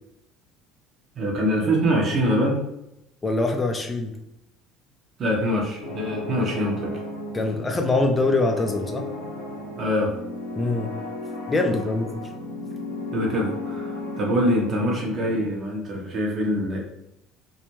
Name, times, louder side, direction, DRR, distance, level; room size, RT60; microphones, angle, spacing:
voice 1, 1.1-2.6 5.2-6.9 9.8-10.2 13.1-16.8, equal, 40° right, -2 dB, 0.7 m, -24 dB
voice 2, 3.2-4.1 7.3-9.1 10.5-10.9 11.5-12.2, left 2 dB, 20° left, 4 dB, 0.4 m, -23 dB
sound 1, 5.8-15.4, left 2 dB, 80° left, 0.6 m, -34 dB
2.3 x 2.1 x 3.0 m, 0.83 s
figure-of-eight pair, 60°, 0 cm